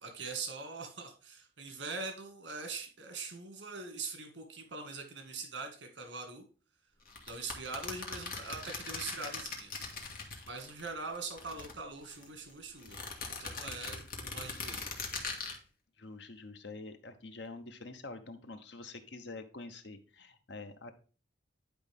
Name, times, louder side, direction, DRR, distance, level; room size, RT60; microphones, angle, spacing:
voice 1, 0.0-6.4 7.3-10.1 10.5-13.0 13.4-14.8, right 4 dB, 75° right, 4 dB, 1.9 m, -42 dB
sound 1, 7.1-10.9 11.1-12.3 12.8-15.6, left 4 dB, 55° left, 1.8 m, -41 dB
voice 2, 16.0-20.9, left 3 dB, 70° left, 8 dB, 1.0 m, -46 dB
10.5 x 5.0 x 3.5 m, 0.37 s
head